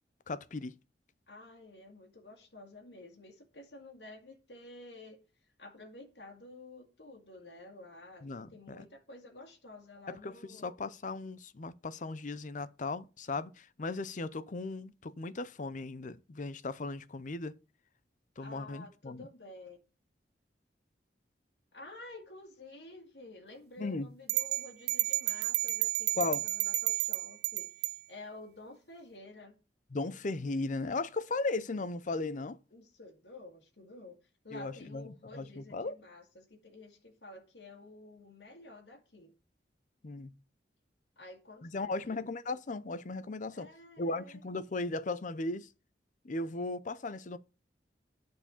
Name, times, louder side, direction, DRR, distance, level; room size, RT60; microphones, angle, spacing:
voice 1, 0.3-0.7 8.2-8.8 10.1-17.5 18.4-19.3 23.8-24.1 26.2-26.4 29.9-32.6 34.5-35.0 35.3-35.9 40.0-40.3 41.6-43.7 44.0-45.7 46.2-47.4, left 3 dB, 45° left, 0.6 m, -37 dB
voice 2, 1.3-5.2 5.6-10.7 18.4-19.8 21.7-29.6 32.7-39.3 41.2-42.2 43.5-44.4, left 2 dB, 70° left, 2.1 m, -51 dB
sound 1, 24.3-28.0, right 18 dB, 65° right, 0.4 m, -31 dB
9.6 x 4.7 x 7.1 m
head